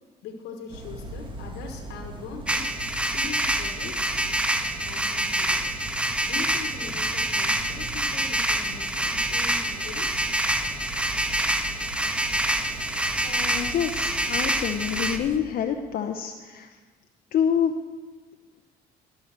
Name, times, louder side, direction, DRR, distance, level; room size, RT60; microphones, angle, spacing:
voice 1, 0.2-2.7 3.0-4.3 4.8-5.7 6.3-10.3 13.5-13.8, left 5 dB, 85° left, 4 dB, 1.3 m, -41 dB
sound 1, 0.7-15.4, right 1 dB, 30° right, 1.4 m, -40 dB
sound 2, 2.5-15.2, right 1 dB, 5° right, 0.6 m, -26 dB
voice 2, 13.2-16.7 17.3-17.8, left 8 dB, 60° left, 4 dB, 0.7 m, -27 dB
12.5 x 5.4 x 7.3 m, 1.3 s
cardioid pair, 110°, 17 cm